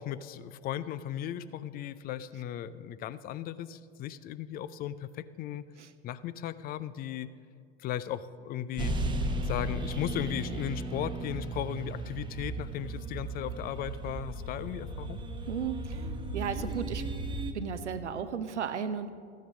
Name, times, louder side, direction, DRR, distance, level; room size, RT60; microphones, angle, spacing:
voice 1, 0.0-5.6 6.0-7.3 7.8-8.9 9.4-15.2, left 11 dB, 25° left, 16 dB, 0.4 m, -36 dB
sound 1, 8.8-17.5, right 2 dB, 15° right, 1.0 m, -35 dB
voice 2, 15.5-16.1 16.3-17.0 17.5-19.1, right 7 dB, 80° right, 11 dB, 0.8 m, -34 dB
14.0 x 9.2 x 6.2 m, 2.3 s
figure-of-eight pair, 85°, 34 cm